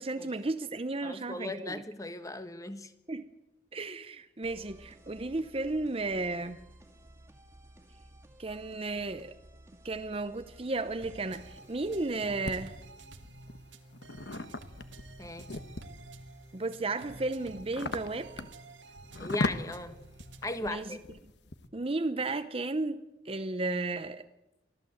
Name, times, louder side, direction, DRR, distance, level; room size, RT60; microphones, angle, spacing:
voice 1, 0.0-1.8 3.1-3.3 3.7-6.6 8.4-9.3 9.8-12.8 16.5-18.3 20.6-21.0 21.7-24.3, right 2 dB, 30° right, 9 dB, 0.7 m, -34 dB
voice 2, 1.0-2.9 15.2-15.5 19.2-20.0 20.4-21.0, left 2 dB, 20° left, 10 dB, 1.2 m, -37 dB
sound 1, 4.4-12.0, right 1 dB, 15° right, 2.1 m, -55 dB
sound 2, 11.0-20.6, right 2 dB, 85° right, 1.9 m, -50 dB
sound 3, 11.3-12.6 13.2-16.1 16.6-21.7, left 2 dB, 70° left, 1.3 m, -38 dB
24.0 x 15.0 x 7.8 m, 0.94 s
head